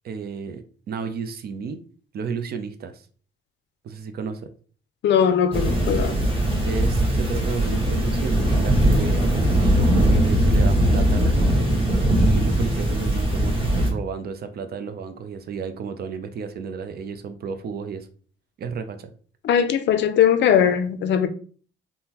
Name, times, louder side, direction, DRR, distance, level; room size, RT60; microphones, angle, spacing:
voice 1, 0.0-1.8 2.1-3.1 3.8-4.5 6.6-18.1 18.6-19.1, right 6 dB, 55° right, 0.5 m, -32 dB
voice 2, 5.0-6.2 19.4-21.3, left 8 dB, 65° left, 0.5 m, -19 dB
sound 1, 5.5-13.9, right 1 dB, 25° right, 1.2 m, -20 dB
3.6 x 2.1 x 2.8 m
cardioid pair, 90°, 20 cm